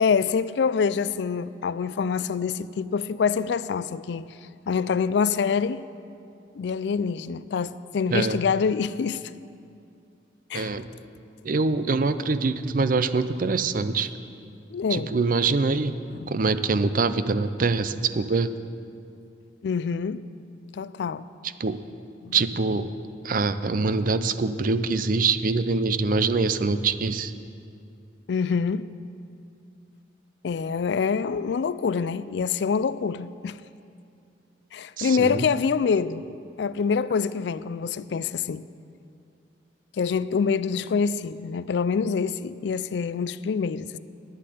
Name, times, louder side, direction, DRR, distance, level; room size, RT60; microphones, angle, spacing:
voice 1, 0.0-4.3 4.7-5.8 6.5-9.2 10.5-10.8 14.7-15.1 16.2-16.3 19.6-20.2 20.7-21.3 22.2-22.4 28.3-28.9 30.4-33.6 34.7-36.2 36.6-38.6 39.9-44.0, left 6 dB, 65° left, 0.3 m, -26 dB
voice 2, 10.5-10.9 11.4-14.1 14.9-16.0 16.3-18.5 21.6-21.8 22.3-22.9 23.2-27.3 35.0-35.5, right 4 dB, 50° right, 0.5 m, -24 dB
11.5 x 7.5 x 9.3 m
head